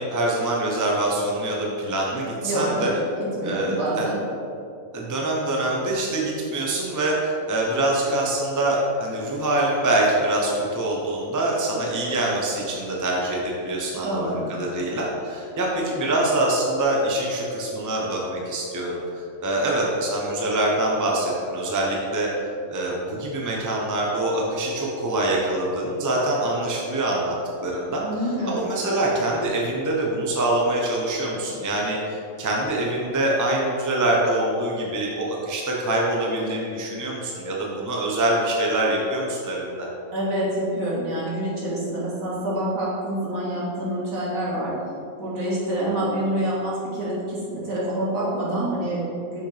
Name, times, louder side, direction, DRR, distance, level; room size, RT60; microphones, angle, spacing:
voice 1, 0.0-2.9 3.4-4.1 4.9-22.3 22.7-27.4 27.6-39.9, right 1 dB, 15° right, -3 dB, 0.6 m, -24 dB
voice 2, 2.4-2.9 3.4-4.2 14.0-14.5 28.0-28.6 40.1-44.7 45.2-49.5, right 1 dB, 70° right, -7 dB, 2.1 m, -27 dB
6.0 x 5.8 x 3.4 m, 2.7 s
omnidirectional pair, 1.5 m